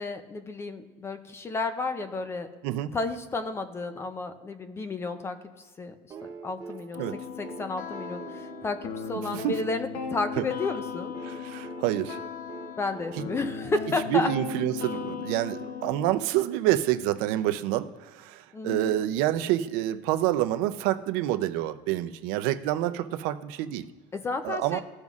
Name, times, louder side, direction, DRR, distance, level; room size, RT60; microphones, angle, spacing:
voice 1, 0.0-2.5 2.9-5.4 5.8-5.9 6.2-7.0 7.4-11.1 12.8-14.3 18.5-19.0 24.1-24.8, left 3 dB, 15° left, 9 dB, 0.4 m, -32 dB
sound 1, 6.1-10.2 11.1-14.7 16.2-16.3, right 5 dB, 25° right, 0.7 m, -45 dB
sound 2, 6.9-16.1, left 6 dB, 65° left, 0.8 m, -37 dB
voice 2, 11.2-12.2 14.1-23.9 24.4-24.8, right 13 dB, 85° right, 9 dB, 0.5 m, -27 dB
15.5 x 5.2 x 2.4 m, 1.5 s
cardioid pair, 170°, 15 cm